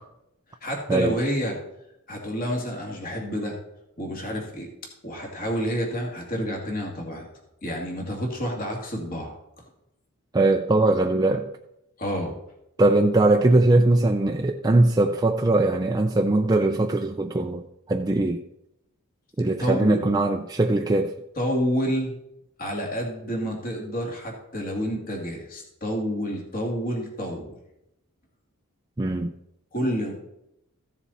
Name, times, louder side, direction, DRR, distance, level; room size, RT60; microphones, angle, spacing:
voice 1, 0.6-1.6 2.1-3.6 4.0-4.7 5.0-7.3 7.6-9.3 12.0-12.3 19.6-20.0 21.4-22.1 22.6-27.6 29.7-30.1, equal, 40° left, 2.4 m, -29 dB
voice 2, 10.3-11.5 12.8-17.6 17.9-18.4 19.4-21.1 29.0-29.3, right 2 dB, 20° right, 0.4 m, -21 dB
15.0 x 7.0 x 4.2 m
head